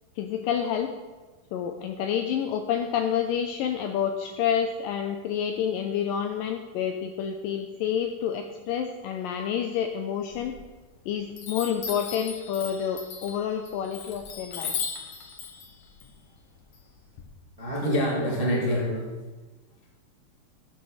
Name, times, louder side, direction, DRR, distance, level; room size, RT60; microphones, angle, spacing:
voice 1, 0.2-0.9 1.5-10.5 11.1-14.7, left 8 dB, 85° left, 4 dB, 1.9 m, -28 dB
Chime, 10.3-11.0 11.4-17.2, left 6 dB, 60° left, 2.1 m, -37 dB
voice 2, 17.6-19.1, equal, 75° right, -4 dB, 0.3 m, -26 dB
11.5 x 7.3 x 6.4 m, 1.3 s
omnidirectional pair, 4.8 m